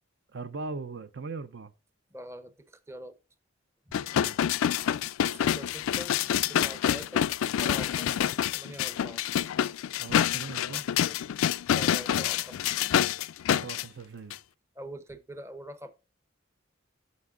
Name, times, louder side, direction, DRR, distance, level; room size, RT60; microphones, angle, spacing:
voice 1, 0.3-1.7 4.1-4.4 10.0-10.8 13.6-14.4, right 4 dB, 60° right, 0.5 m, -39 dB
voice 2, 2.1-3.1 5.3-6.2 6.5-7.3 7.6-9.2 11.7-12.7 14.8-15.9, equal, 15° right, 0.7 m, -44 dB
sound 1, 3.9-13.8 14.3-14.4, left 10 dB, 90° left, 0.3 m, -27 dB
9.5 x 6.4 x 2.4 m
head